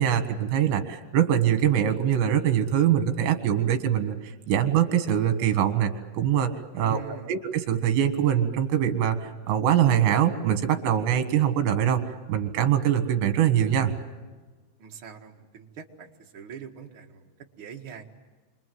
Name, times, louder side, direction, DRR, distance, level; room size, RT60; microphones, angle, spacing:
voice 1, 0.0-4.2 4.5-7.0 7.3-13.9, right 10 dB, 70° right, 8 dB, 3.9 m, -23 dB
voice 2, 6.7-7.4 14.8-17.3 17.6-18.0, right 7 dB, 55° right, 1 dB, 1.4 m, -43 dB
29.5 x 25.0 x 7.8 m, 1.3 s
omnidirectional pair, 5.5 m